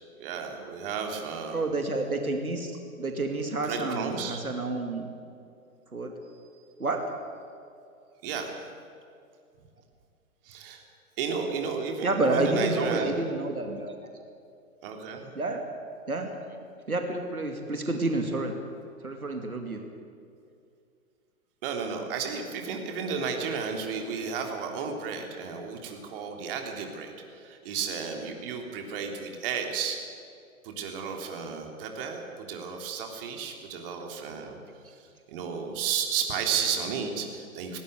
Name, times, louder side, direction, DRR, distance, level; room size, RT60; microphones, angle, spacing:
voice 1, 0.2-1.7 3.6-4.4 8.2-8.6 10.4-10.8 11.2-13.1 14.8-15.3 21.6-30.0 30.6-34.6 34.9-35.0 35.3-37.8, right 6 dB, 40° right, 3 dB, 3.3 m, -33 dB
voice 2, 1.5-2.7 3.0-5.1 5.9-6.1 6.8-7.0 12.0-13.9 15.3-15.6 16.1-16.4 16.9-18.5 19.0-19.8, right 2 dB, 80° right, 4 dB, 2.6 m, -29 dB
18.5 x 18.5 x 9.6 m, 2.4 s
figure-of-eight pair, 115°, 43 cm